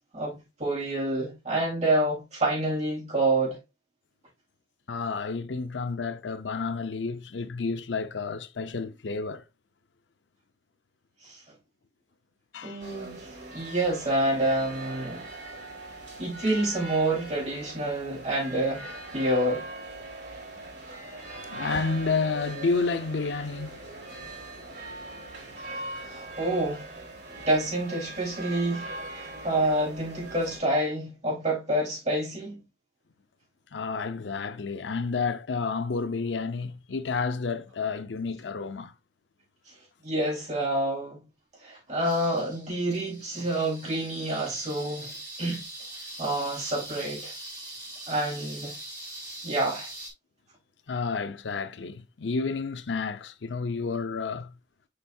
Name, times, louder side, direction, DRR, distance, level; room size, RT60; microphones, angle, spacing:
voice 1, 0.1-3.6 11.2-11.4 12.6-15.3 16.2-18.9 19.1-19.7 25.7-26.9 27.4-32.6 40.0-41.2 41.6-45.6 46.2-47.3 48.1-48.8 49.4-49.9, right 1 dB, 40° right, 4.3 m, -28 dB
voice 2, 4.9-9.4 12.5-12.8 21.4-26.2 33.7-38.9 50.9-54.5, left 4 dB, 90° left, 0.6 m, -31 dB
sound 1, 12.8-30.6, right 2 dB, 70° right, 3.4 m, -41 dB
sound 2, 42.0-50.1, right 1 dB, 20° right, 4.4 m, -42 dB
6.6 x 5.5 x 2.7 m
head